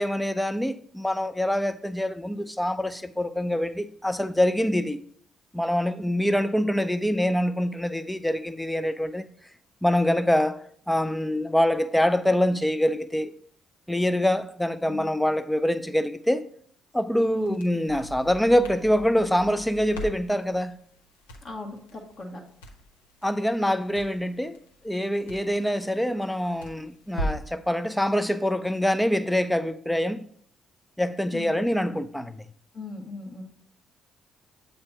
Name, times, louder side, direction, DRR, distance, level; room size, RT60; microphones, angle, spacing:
voice 1, 0.0-5.0 5.5-9.2 9.8-13.3 13.9-16.4 16.9-20.7 23.2-24.6 24.8-30.2 31.0-32.4, equal, 5° left, 0.4 m, -25 dB
Crackle, 17.4-27.6, equal, 80° left, 0.6 m, -40 dB
voice 2, 21.4-22.4 31.3-31.6 32.7-33.4, left 3 dB, 45° left, 1.1 m, -38 dB
7.7 x 2.8 x 4.4 m
figure-of-eight pair, 45°, 0 cm